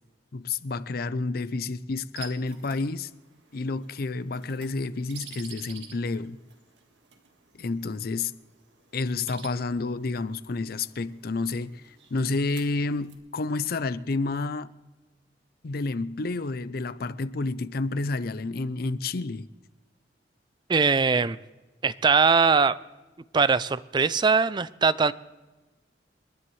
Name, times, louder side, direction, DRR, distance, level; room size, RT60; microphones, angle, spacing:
voice 1, 0.3-3.1 3.5-6.4 7.5-8.3 8.9-14.7 15.6-19.5, left 3 dB, 60° left, 0.5 m, -30 dB
sound 1, 2.1-13.2, right 7 dB, 80° right, 1.8 m, -50 dB
voice 2, 20.7-21.4 21.8-22.8 23.3-25.1, right 5 dB, 25° right, 0.4 m, -21 dB
29.5 x 10.5 x 3.2 m
head